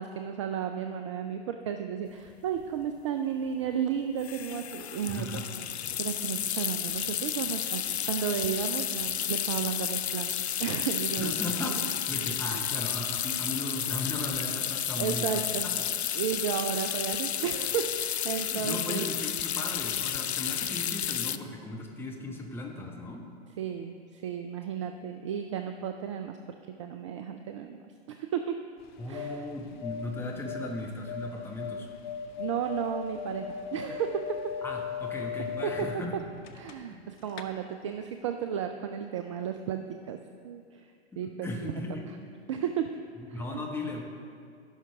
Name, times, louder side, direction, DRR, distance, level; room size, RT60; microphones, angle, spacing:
voice 1, 0.0-5.4 6.0-10.3 10.6-11.3 11.6-11.9 12.4-12.7 15.0-19.1 23.6-26.4 26.8-28.6 29.1-29.4 32.4-34.4 35.6-35.9 36.6-40.2 40.4-41.7 42.5-42.9 43.3-43.6, right 8 dB, 30° right, 7 dB, 0.4 m, -33 dB
sound 1, 2.3-2.4 2.6-2.8 4.2-21.4, left 9 dB, 75° left, 0.5 m, -32 dB
voice 2, 5.1-5.5 11.2-15.4 18.5-23.3 29.0-31.9 34.6-36.2 36.9-37.0 41.1-42.0 43.2-44.0, left 1 dB, 5° left, 0 dB, 1.1 m, -37 dB
sound 2, 28.8-37.0 37.3-37.4, left 7 dB, 45° left, 0.7 m, -38 dB
16.0 x 5.8 x 3.5 m, 2.3 s
figure-of-eight pair, 110°, 33 cm